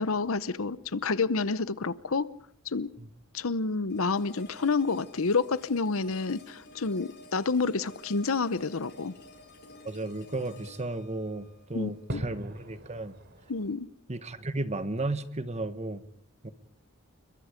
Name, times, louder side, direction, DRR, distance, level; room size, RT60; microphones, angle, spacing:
voice 1, 0.0-2.3 2.7-2.9 3.3-9.1 11.7-12.2 13.5-13.9, left 4 dB, 70° left, 16 dB, 0.8 m, -29 dB
sound 1, 3.9-12.9, left 2 dB, 50° left, 6.4 m, -52 dB
Fireworks, 8.4-13.7, equal, 55° right, 3.2 m, -45 dB
voice 2, 9.8-13.2 14.1-16.0 16.4-16.5, right 2 dB, 30° right, 11 dB, 1.4 m, -34 dB
30.0 x 22.0 x 5.2 m, 0.63 s
head